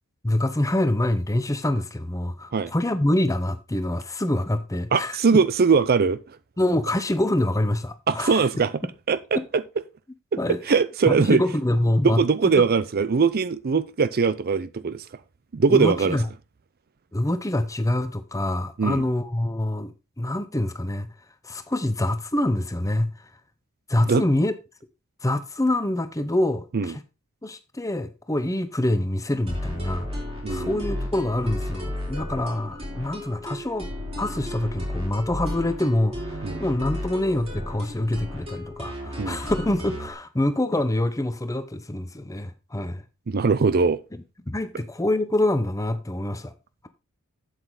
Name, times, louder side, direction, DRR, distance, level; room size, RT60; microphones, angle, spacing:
voice 1, 0.2-5.2 6.6-8.4 10.4-10.6 11.1-12.2 15.7-16.2 17.1-21.1 21.4-23.1 23.9-24.5 25.2-27.0 27.4-30.1 30.5-33.9 34.2-43.0 44.5-46.5, left 1 dB, 15° left, 0.8 m, -25 dB
voice 2, 4.9-6.4 8.1-8.7 9.1-9.6 10.6-11.4 12.0-15.1 15.5-16.2 18.8-19.0 24.1-24.2 26.7-26.9 30.4-30.8 36.4-36.6 39.2-39.4 43.3-44.0, right 5 dB, 45° right, 0.5 m, -21 dB
sound 1, 29.5-40.1, left 1 dB, 25° right, 3.4 m, -33 dB
8.2 x 7.7 x 3.9 m
head